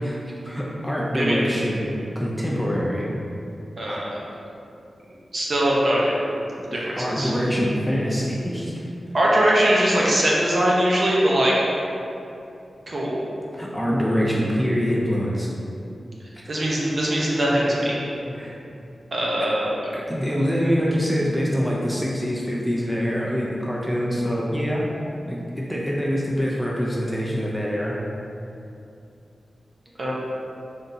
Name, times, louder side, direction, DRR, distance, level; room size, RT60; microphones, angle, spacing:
voice 1, 0.4-1.9 2.2-3.1 3.9-4.0 6.7-8.9 13.5-15.5 16.4-16.5 18.3-18.5 19.9-24.8 25.3-28.0, equal, ahead, -5 dB, 0.5 m, -25 dB
voice 2, 3.8-4.2 5.3-6.3 6.7-7.3 9.1-11.6 12.9-13.2 16.5-18.0 19.1-19.8 30.0-30.1, right 1 dB, 45° right, -5 dB, 0.8 m, -21 dB
3.6 x 2.8 x 3.9 m, 2.7 s
wide cardioid pair, 115°, 0 cm